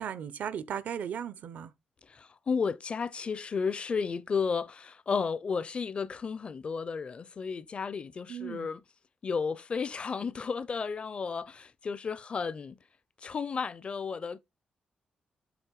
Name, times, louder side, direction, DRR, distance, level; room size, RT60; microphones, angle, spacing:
voice 1, 0.0-1.7 8.3-8.7, right 8 dB, 80° right, 0.8 m, -36 dB
voice 2, 2.1-8.8 9.2-12.8 13.2-14.4, left 5 dB, 45° left, 0.6 m, -33 dB
7.9 x 3.0 x 4.8 m
cardioid pair, 100°, 3 cm